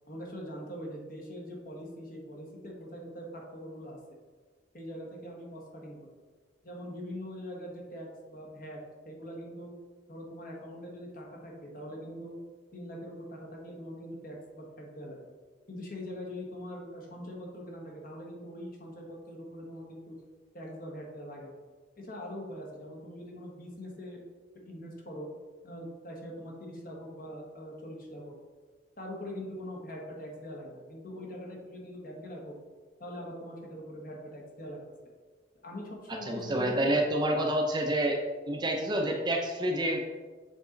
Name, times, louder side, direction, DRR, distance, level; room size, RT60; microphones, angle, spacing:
voice 1, 0.1-4.0 4.7-6.0 6.6-8.8 9.0-9.7 10.1-12.4 12.7-15.3 15.7-20.2 20.5-21.6 22.0-24.2 24.6-25.3 25.6-28.3 29.0-32.6 33.0-34.8 35.6-36.9, equal, 50° left, -1 dB, 1.4 m, -42 dB
voice 2, 36.3-38.2 38.5-40.0, right 1 dB, 25° right, 1 dB, 0.6 m, -28 dB
7.1 x 4.2 x 3.9 m, 1.4 s
head